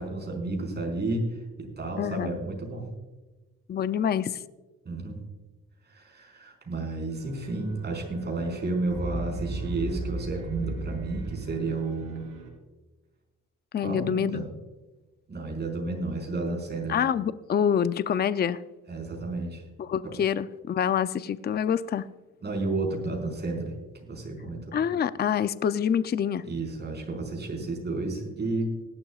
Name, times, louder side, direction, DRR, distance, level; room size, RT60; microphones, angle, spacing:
voice 1, 0.0-2.9 4.8-5.2 5.8-12.2 13.8-14.6 15.3-17.0 18.9-19.6 20.0-20.1 22.4-23.7 24.0-24.8 26.4-28.8, right 2 dB, 35° right, 1 dB, 4.8 m, -32 dB
voice 2, 2.0-2.4 3.7-4.4 13.7-14.4 16.9-18.6 19.8-22.1 24.7-26.4, left 8 dB, 35° left, 14 dB, 0.5 m, -26 dB
sound 1, 7.1-12.5, right 3 dB, 90° right, 3.7 m, -36 dB
19.0 x 12.0 x 2.4 m, 1.2 s
cardioid pair, 90°, 30 cm